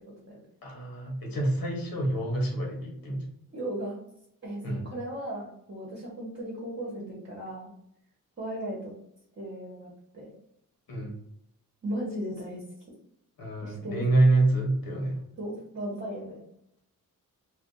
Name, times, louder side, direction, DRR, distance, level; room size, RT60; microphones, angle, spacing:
voice 1, 0.6-3.3 4.6-4.9 10.9-11.1 13.4-15.2, right 2 dB, 75° left, 0 dB, 1.0 m, -26 dB
voice 2, 3.5-4.0 4.4-7.7 8.4-8.9 9.4-10.3 11.8-12.6 13.6-14.0 15.4-16.4, right 1 dB, 35° right, -5 dB, 1.1 m, -36 dB
2.5 x 2.3 x 3.7 m, 0.75 s
wide cardioid pair, 120°, 35 cm